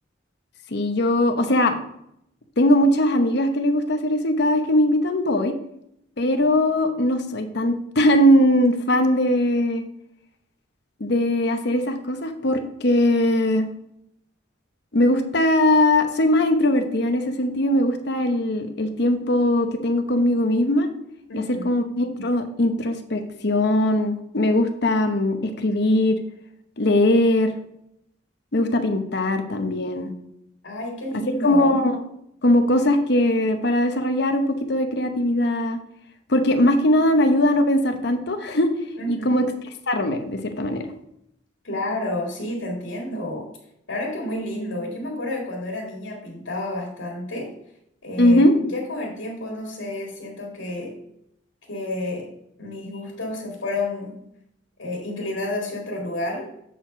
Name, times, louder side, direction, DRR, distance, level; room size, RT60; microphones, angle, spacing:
voice 1, 0.7-1.8 2.6-5.5 6.2-9.8 11.0-13.7 14.9-20.9 21.3-26.2 26.8-27.6 28.5-30.1 31.4-32.0 32.4-34.4 34.7-35.8 36.3-38.7 39.1-39.4 39.9-40.8 48.2-48.5, left 1 dB, 60° left, 7 dB, 0.9 m, -20 dB
voice 2, 21.3-21.7 30.6-31.8 39.0-39.4 41.6-43.5 43.9-47.5 48.0-50.9 51.7-52.3 52.6-54.2 54.8-56.5, left 1 dB, 80° left, -1 dB, 2.1 m, -30 dB
7.6 x 4.6 x 5.0 m, 0.77 s
head